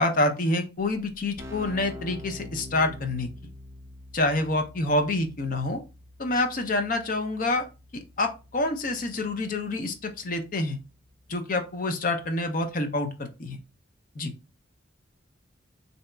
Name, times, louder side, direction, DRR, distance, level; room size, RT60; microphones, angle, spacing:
voice 1, 0.0-3.3 4.1-5.8 6.2-7.7 7.9-10.8 11.3-13.6 14.2-14.3, left 2 dB, 45° left, 7 dB, 0.5 m, -27 dB
Keyboard (musical), 1.2-11.7, left 1 dB, 15° right, 0.5 m, -46 dB
3.9 x 2.7 x 2.2 m, 0.29 s
head